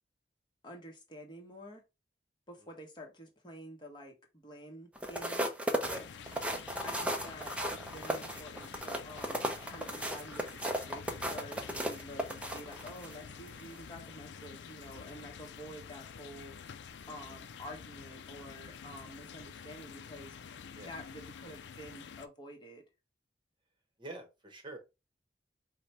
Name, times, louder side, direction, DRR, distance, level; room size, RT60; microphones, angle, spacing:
voice 1, 0.6-1.8 2.5-5.5 6.8-16.6 17.1-20.4 20.9-22.8, equal, 25° left, 2 dB, 1.2 m, -49 dB
sound 1, 4.9-13.1 13.6-13.8, right 1 dB, 5° right, 0.6 m, -35 dB
sound 2, 5.8-22.3, left 6 dB, 85° left, 0.4 m, -48 dB
voice 2, 17.0-17.4 20.7-20.9 24.0-24.8, right 1 dB, 25° right, 4 dB, 1.0 m, -47 dB
4.9 x 2.2 x 4.1 m, 0.25 s
head